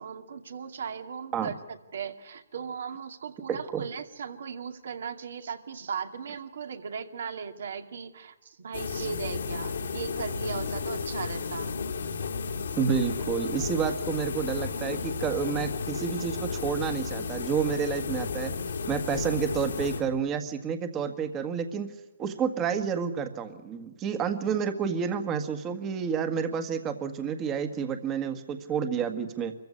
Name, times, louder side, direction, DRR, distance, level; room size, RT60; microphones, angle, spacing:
voice 1, 0.0-11.7, right 6 dB, 70° right, 7 dB, 2.4 m, -37 dB
voice 2, 3.5-3.8 12.8-18.5 18.9-29.5, right 7 dB, 20° right, 9 dB, 1.7 m, -30 dB
sound 1, 8.7-20.4, left 5 dB, 75° left, 2.7 m, -33 dB
24.5 x 15.0 x 10.0 m, 1.1 s
hypercardioid pair, 150°, 0 cm